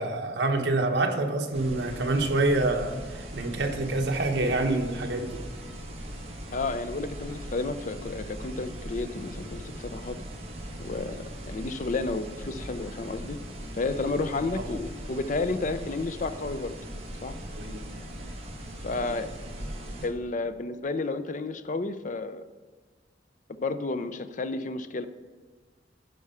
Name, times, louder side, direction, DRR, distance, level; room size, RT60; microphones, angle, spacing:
voice 1, 0.0-5.4 14.6-14.7 17.6-17.8 18.9-19.1, right 2 dB, 70° right, 3 dB, 1.1 m, -27 dB
sound 1, 1.5-20.1, right 1 dB, 35° right, 1.4 m, -39 dB
voice 2, 6.5-10.2 10.8-13.4 13.7-16.8 17.2-17.4 18.8-19.3 20.0-22.5 23.5-25.1, left 3 dB, 45° left, 11 dB, 0.5 m, -31 dB
9.5 x 5.6 x 5.7 m, 1.4 s
head